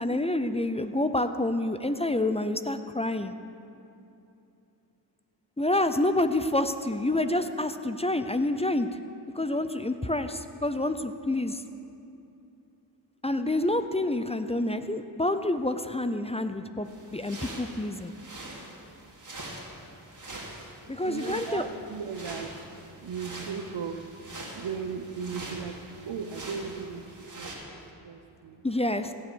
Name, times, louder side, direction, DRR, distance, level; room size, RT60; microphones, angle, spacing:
voice 1, 0.0-3.3 5.6-8.9 9.4-11.6 13.2-18.1 20.9-21.6 28.6-29.1, left 1 dB, 15° left, 9 dB, 0.5 m, -28 dB
sound 1, 16.9-27.6, right 2 dB, 45° right, 2.4 m, -43 dB
voice 2, 21.0-22.7 23.0-24.1 24.5-28.6 29.0-29.1, right 6 dB, 80° right, 8 dB, 0.9 m, -37 dB
16.0 x 6.7 x 6.2 m, 2.8 s
cardioid pair, 50°, 44 cm